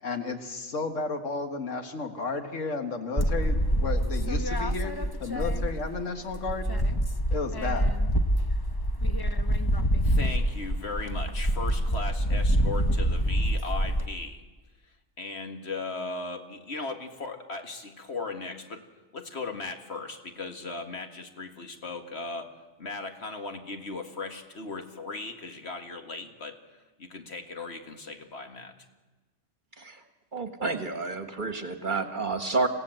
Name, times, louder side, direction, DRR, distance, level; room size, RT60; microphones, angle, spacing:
voice 1, 0.0-6.7 7.3-7.9, left 4 dB, 85° left, 6 dB, 1.9 m, -33 dB
sound 1, 3.2-6.0 6.3-14.1, equal, 20° left, 0.7 m, -26 dB
voice 2, 10.0-14.4 14.8-18.8 19.1-22.5 22.8-28.7, left 3 dB, 60° left, 5 dB, 2.1 m, -37 dB
voice 3, 30.3-32.7, right 3 dB, 40° right, 8 dB, 1.3 m, -30 dB
27.0 x 16.5 x 7.7 m, 1.2 s
omnidirectional pair, 1.3 m